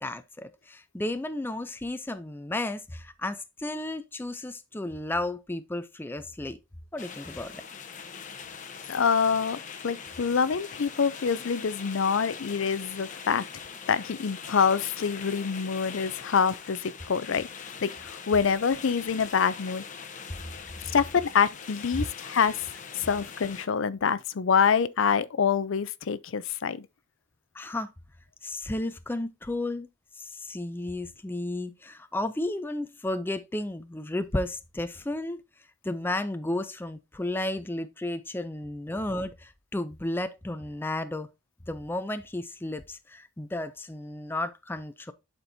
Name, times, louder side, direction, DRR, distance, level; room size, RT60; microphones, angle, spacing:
voice 1, 0.0-6.6 6.9-7.5 27.5-27.9 28.4-29.9 30.2-35.4 35.8-41.3 41.7-45.1, left 1 dB, 10° left, 0.4 m, -33 dB
sound 1, 7.0-23.7, left 6 dB, 35° left, 0.8 m, -42 dB
voice 2, 8.9-9.6 9.8-13.4 13.9-17.5 17.8-19.8 20.9-22.6 22.9-26.9, left 6 dB, 65° left, 0.5 m, -26 dB
11.0 x 4.4 x 2.7 m
head